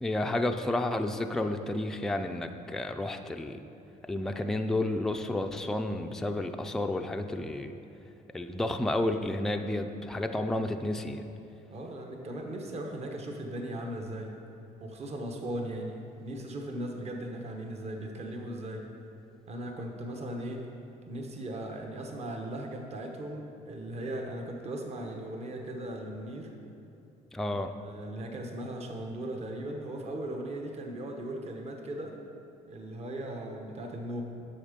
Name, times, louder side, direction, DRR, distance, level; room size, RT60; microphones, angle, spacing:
voice 1, 0.0-3.6 4.1-7.7 8.3-11.2 27.3-27.7, left 1 dB, 5° left, 5 dB, 0.4 m, -31 dB
voice 2, 11.7-14.4 14.8-18.9 19.5-20.7 21.1-26.5 27.5-32.2 32.7-34.2, right 1 dB, 40° right, 2 dB, 1.1 m, -38 dB
8.5 x 6.5 x 5.1 m, 2.8 s
cardioid pair, 110°, 17 cm